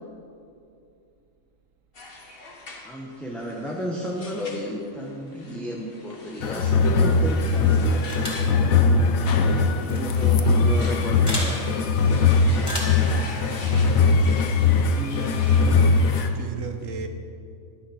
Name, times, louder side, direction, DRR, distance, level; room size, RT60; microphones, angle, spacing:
sound 1, 1.9-16.3, left 2 dB, 45° left, 1.5 m, -43 dB
voice 1, 2.8-9.4 9.7-11.6 14.5-15.8, equal, ahead, -3 dB, 1.0 m, -33 dB
sound 2, 6.4-16.3, left 4 dB, 85° left, 1.2 m, -20 dB
sound 3, 8.1-8.5 9.8-10.0 11.3-11.5 12.6-13.0, equal, 15° left, 3.5 m, -31 dB
voice 2, 12.7-14.0 16.3-17.1, right 5 dB, 75° right, 6 dB, 1.3 m, -37 dB
12.0 x 10.0 x 6.3 m, 2.5 s
omnidirectional pair, 1.4 m